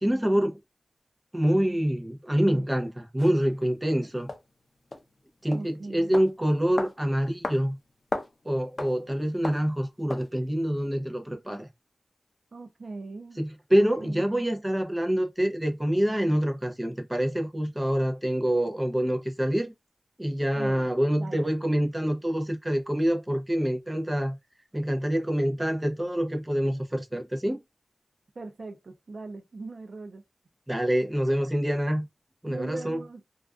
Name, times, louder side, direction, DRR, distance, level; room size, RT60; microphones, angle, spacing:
voice 1, 0.0-0.6 1.3-4.3 5.4-7.8 8.4-11.7 13.4-19.7 20.2-24.4 24.7-27.6 30.7-32.1 32.4-33.0, equal, 15° right, 0.6 m, -26 dB
sound 1, 3.2-3.3 4.3-4.4 4.9-5.1 5.5-5.7 6.1-6.3 6.8-7.0 7.4-7.6 7.9-8.3 8.8-9.0 9.4-9.7 10.1-10.3, left 2 dB, 50° left, 0.5 m, -33 dB
voice 2, 5.5-6.1 12.5-13.4 13.8-14.3 20.6-21.5 28.4-30.2 32.5-33.2, right 3 dB, 65° right, 0.4 m, -40 dB
2.3 x 2.3 x 2.3 m
wide cardioid pair, 75°, 0 cm